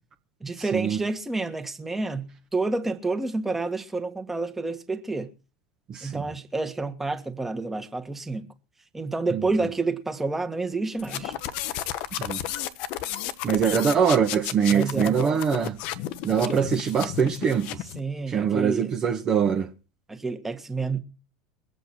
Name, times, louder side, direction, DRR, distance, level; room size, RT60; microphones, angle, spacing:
voice 1, 0.4-5.3 6.0-8.5 8.9-11.3 14.7-15.4 16.4-16.7 18.0-18.9 20.1-21.0, right 3 dB, 10° right, 1.8 m, -29 dB
voice 2, 5.9-6.2 9.3-9.4 12.2-12.4 13.4-15.7 16.2-17.7 18.3-19.7, right 7 dB, 30° right, 1.5 m, -23 dB
sound 1, 11.0-18.0, left 13 dB, 50° left, 1.0 m, -33 dB
23.0 x 8.2 x 4.5 m
figure-of-eight pair, 75°, 2 cm